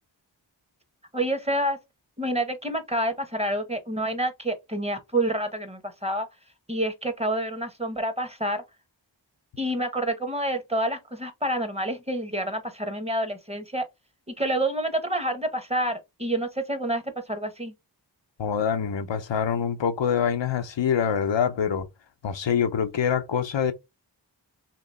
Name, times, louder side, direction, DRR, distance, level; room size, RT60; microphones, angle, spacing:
voice 1, 1.1-1.8 2.2-6.3 6.7-8.6 9.6-13.8 14.3-17.7, right 1 dB, 15° right, 0.9 m, -28 dB
voice 2, 18.4-21.9 22.2-23.7, left 7 dB, 85° left, 0.6 m, -25 dB
3.0 x 2.8 x 4.0 m
wide cardioid pair, 50°, 43 cm